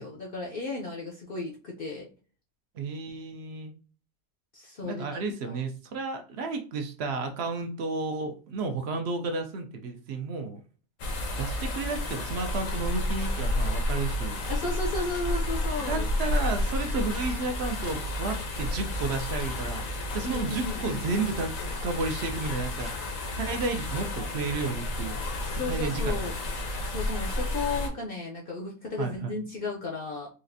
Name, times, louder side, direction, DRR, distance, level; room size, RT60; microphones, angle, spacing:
voice 1, 0.0-2.1 4.5-5.0 5.5-5.6 14.5-16.1 20.2-21.0 25.4-26.3 26.8-30.3, left 3 dB, 55° left, -1 dB, 0.7 m, -34 dB
voice 2, 2.7-3.7 4.8-10.6 11.4-14.4 15.9-19.9 20.1-23.0 23.3-25.2 25.6-26.2 29.0-29.4, right 3 dB, 60° right, 6 dB, 0.8 m, -32 dB
sound 1, 11.0-27.9, left 1 dB, 80° left, 1.2 m, -31 dB
4.1 x 2.4 x 2.5 m, 0.36 s
omnidirectional pair, 1.4 m